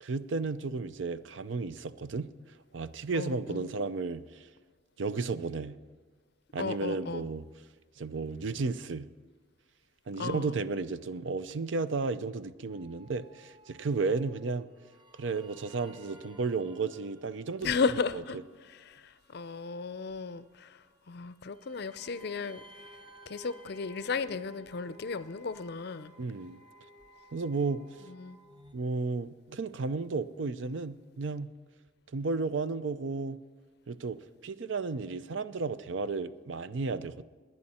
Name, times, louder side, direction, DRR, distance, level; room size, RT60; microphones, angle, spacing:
voice 1, 0.0-2.3 2.7-4.4 5.0-5.8 6.5-7.5 8.0-9.1 10.1-14.7 15.2-17.7 18.1-18.2 26.2-26.6 27.3-27.9 28.7-31.5 32.1-33.4 33.9-37.2, right 4 dB, 65° right, 0.5 m, -33 dB
voice 2, 3.1-3.7 6.6-7.3 10.2-10.6 17.6-18.4 18.7-20.8 21.1-22.6 23.3-26.1 28.1-28.4, left 5 dB, 55° left, 0.5 m, -34 dB
sound 1, 12.7-28.8, equal, 25° right, 0.9 m, -56 dB
20.0 x 9.6 x 4.3 m
head